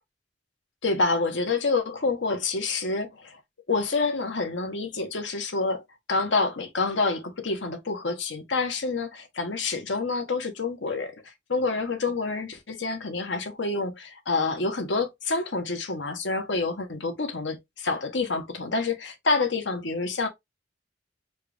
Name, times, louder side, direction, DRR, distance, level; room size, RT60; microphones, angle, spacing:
voice 1, 0.8-3.4 3.7-5.8 6.1-11.1 11.5-20.3, left 3 dB, 90° left, 1.0 m, -27 dB
4.4 x 2.4 x 3.3 m
head